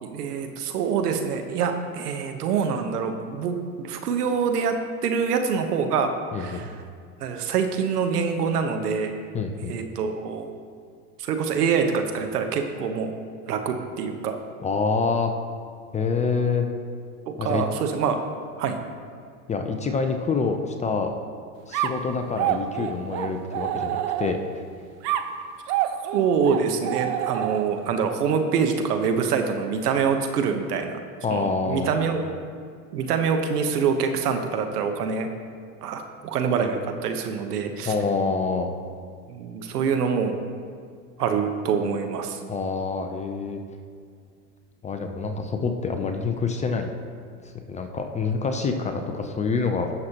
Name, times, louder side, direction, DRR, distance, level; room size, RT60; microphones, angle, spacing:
voice 1, 0.0-4.7 5.0-6.1 6.3-6.7 7.2-9.1 9.7-10.5 11.2-13.1 13.5-14.4 17.3-18.2 18.6-18.8 26.1-31.0 31.3-32.3 32.9-35.3 35.8-37.9 39.3-40.4 41.2-42.4, right 6 dB, 75° right, 6 dB, 1.2 m, -25 dB
voice 2, 6.3-6.6 9.3-9.7 14.6-15.3 15.9-16.7 17.4-17.6 19.5-21.1 21.7-24.6 31.2-31.9 37.9-38.7 42.5-43.6 44.8-46.9 47.4-49.9, left 4 dB, 15° left, 5 dB, 0.5 m, -26 dB
sound 1, 21.7-24.6 25.0-27.9, right 11 dB, 40° right, 0.6 m, -28 dB
18.0 x 6.4 x 3.0 m, 2.1 s
hypercardioid pair, 105°, 47 cm